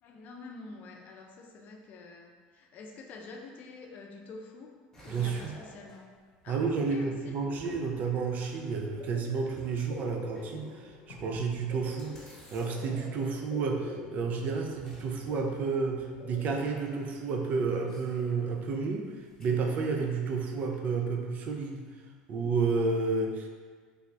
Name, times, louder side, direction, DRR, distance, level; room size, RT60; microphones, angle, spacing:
voice 1, 0.0-4.8 5.0-6.1 6.4-7.4, left 3 dB, 45° left, 2 dB, 0.5 m, -47 dB
sound 1, 4.9-7.0 8.0-8.1 9.4-10.6 11.4-11.5 12.0-14.3 14.6-15.0 15.4-15.5 15.9-16.0 16.2-16.4 16.6-20.7, equal, 15° left, 1.0 m, -53 dB
voice 2, 5.1-5.5 6.5-12.2 12.5-19.1 19.4-21.9 22.3-23.5, right 4 dB, 45° right, 3 dB, 0.4 m, -31 dB
sound 2, 6.3-6.4 6.6-17.2, left 3 dB, 85° left, 0.7 m, -47 dB
3.3 x 2.5 x 3.2 m, 1.5 s
supercardioid pair, 115°, 4 cm